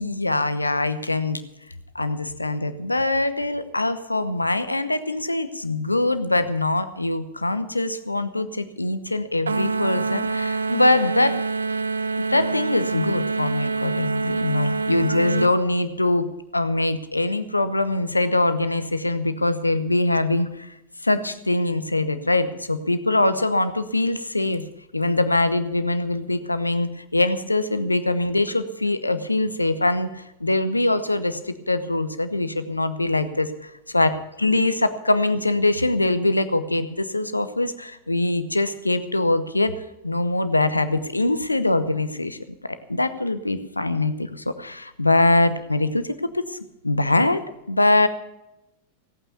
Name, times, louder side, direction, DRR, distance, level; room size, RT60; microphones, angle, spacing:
voice 1, 0.0-1.4 1.9-11.4 12.3-16.3 16.5-20.7 21.0-24.6 24.9-39.7 40.0-46.0 46.3-46.6 46.8-47.4 47.7-48.1, left 2 dB, 85° left, 12 dB, 0.9 m, -23 dB
sound 1, 9.5-15.5, right 4 dB, 75° right, 0.4 m, -26 dB
17.5 x 8.9 x 6.8 m, 0.91 s
figure-of-eight pair, 90°, 0 cm